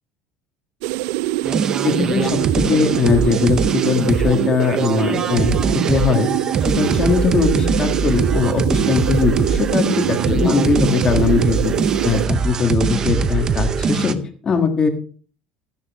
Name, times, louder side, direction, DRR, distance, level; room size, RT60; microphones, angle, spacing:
sound 1, 0.8-12.3, right 17 dB, 75° right, 0.4 m, -24 dB
sound 2, 1.4-14.1, right 5 dB, 25° right, 0.6 m, -22 dB
voice 1, 1.5-5.6 5.9-6.3 6.6-11.7 12.0-14.2 14.4-14.9, left 5 dB, 25° left, 6 dB, 1.5 m, -20 dB
12.0 x 10.5 x 3.5 m, 0.42 s
cardioid pair, 170°, 3 cm